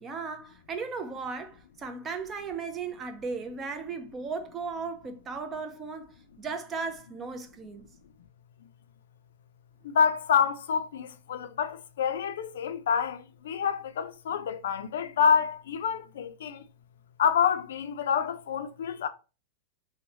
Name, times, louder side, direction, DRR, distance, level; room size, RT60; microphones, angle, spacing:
voice 1, 0.0-7.8, right 4 dB, 15° right, 0.3 m, -36 dB
voice 2, 9.9-16.6 17.2-19.1, left 7 dB, 85° left, 0.3 m, -27 dB
3.0 x 2.0 x 2.7 m
supercardioid pair, 165°, 0 cm